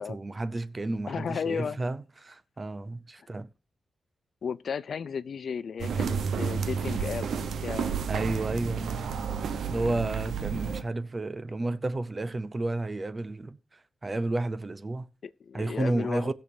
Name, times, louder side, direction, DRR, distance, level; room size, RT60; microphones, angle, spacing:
voice 1, 0.0-3.5 8.1-9.2 9.7-15.1 15.5-16.3, right 2 dB, 20° right, 0.6 m, -32 dB
voice 2, 1.1-1.8 4.4-8.0 15.2-16.3, left 6 dB, 55° left, 0.4 m, -34 dB
sound 1, 5.8-10.8, right 6 dB, 80° right, 0.9 m, -31 dB
20.0 x 6.8 x 2.7 m
wide cardioid pair, 175°, 0 cm